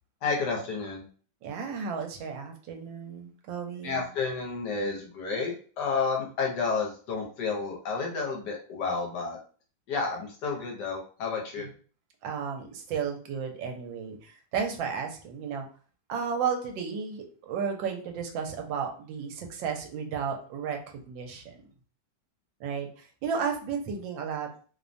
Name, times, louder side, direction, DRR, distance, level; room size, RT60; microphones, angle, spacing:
voice 1, 0.2-1.0 3.8-9.4 9.9-11.7, left 4 dB, 70° left, 0 dB, 1.2 m, -31 dB
voice 2, 1.4-4.1 11.6-11.7 12.2-15.7 16.1-20.8 21.1-21.6 22.6-24.5, right 6 dB, 80° right, 3 dB, 1.3 m, -33 dB
3.2 x 2.1 x 2.5 m, 0.41 s
omnidirectional pair, 2.1 m